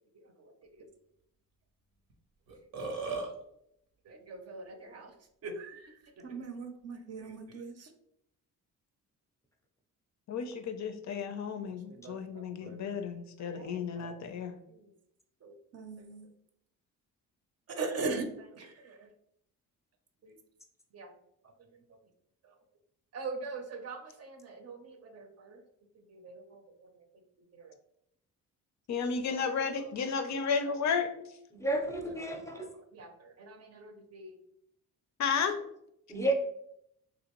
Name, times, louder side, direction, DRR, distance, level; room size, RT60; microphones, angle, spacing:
Burping eructation, 2.1-2.2 2.5-3.3, right 3 dB, 90° right, 0.9 m, -35 dB
voice 1, 4.1-5.1 5.4-7.9 11.9-13.0 13.4-14.2 14.4-14.9 15.4-16.3 17.7-19.1 20.2-20.4 20.9-21.1 21.9-22.0 22.4-22.5 23.1-25.6 26.1-26.9 27.5-27.8 29.3-29.4 30.3-30.7 32.6-34.4, right 3 dB, 45° right, 6 dB, 0.6 m, -42 dB
voice 2, 10.3-14.6 28.9-31.1 35.2-35.6, left 6 dB, 55° left, 8 dB, 0.4 m, -33 dB
voice 3, 31.5-32.7 36.1-36.3, right 2 dB, 10° left, 3 dB, 0.6 m, -31 dB
3.3 x 2.5 x 2.9 m, 0.76 s
cardioid pair, 80°, 34 cm